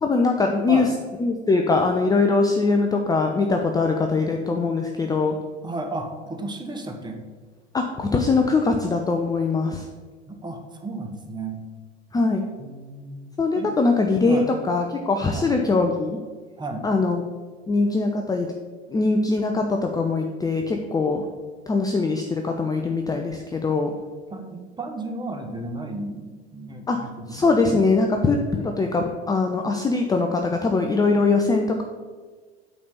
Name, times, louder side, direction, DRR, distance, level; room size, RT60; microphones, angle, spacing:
voice 1, 0.0-0.9 1.2-5.4 7.7-9.9 12.1-12.4 13.4-16.2 16.8-17.2 17.7-18.5 18.9-21.2 21.7-23.9 26.9-27.0 27.3-31.8, left 3 dB, 10° left, 3 dB, 0.6 m, -22 dB
voice 2, 5.6-7.2 10.3-11.6 12.6-13.7 14.2-14.5 15.3-15.5 16.6-16.9 24.3-27.5, right 2 dB, 15° right, 4 dB, 1.2 m, -33 dB
8.5 x 4.1 x 6.7 m, 1.5 s
figure-of-eight pair, 75°, 32 cm